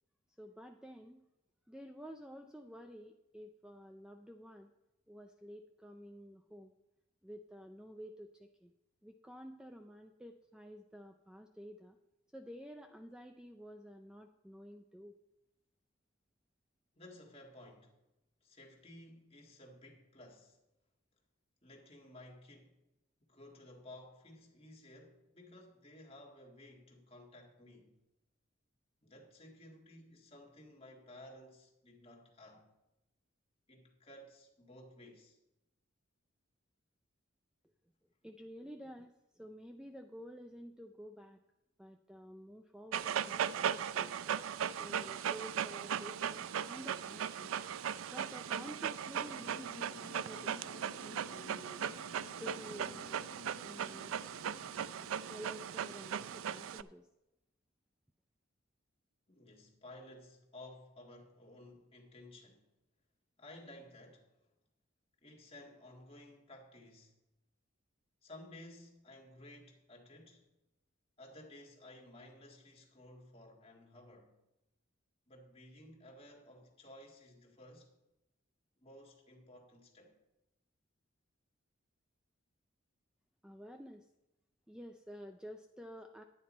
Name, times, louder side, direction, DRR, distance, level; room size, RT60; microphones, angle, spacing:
voice 1, 0.4-1.3 1.7-4.7 5.1-6.7 7.2-8.7 9.0-12.0 12.3-15.2 38.2-41.4 41.8-44.1 44.8-47.5 48.1-51.9 52.4-53.3 53.6-54.1 55.3-57.1 83.4-84.1 84.7-86.2, equal, 5° right, 0.3 m, -51 dB
voice 2, 17.0-18.0 18.4-20.6 21.6-22.8 23.3-28.0 29.0-32.7 33.7-35.4 59.3-62.7 63.4-64.3 65.2-67.1 68.2-70.5 71.2-74.4 75.3-77.9 78.8-80.2, left 1 dB, 30° left, 1.8 m, -55 dB
Dog, 42.9-56.8, right 8 dB, 90° right, 0.3 m, -38 dB
sound 1, 49.3-56.4, left 3 dB, 70° left, 0.6 m, -56 dB
10.5 x 9.3 x 4.2 m
head